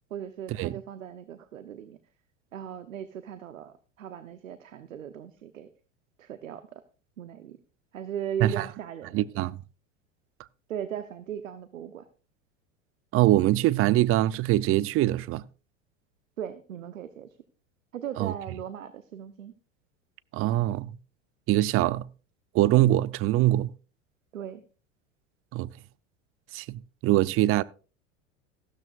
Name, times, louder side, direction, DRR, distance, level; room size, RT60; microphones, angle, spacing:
voice 1, 0.1-2.0 2.5-5.7 6.2-6.8 7.2-7.6 7.9-9.2 10.7-12.1 16.4-17.4 17.9-19.5 24.3-24.6, right 9 dB, 85° right, 0.9 m, -38 dB
voice 2, 9.1-9.6 13.1-15.4 18.2-18.3 20.3-20.9 21.5-22.1 22.5-23.7 25.5-25.7 26.5-27.6, right 15 dB, 35° right, 0.5 m, -23 dB
15.0 x 13.0 x 2.4 m
hypercardioid pair, 90°, 38 cm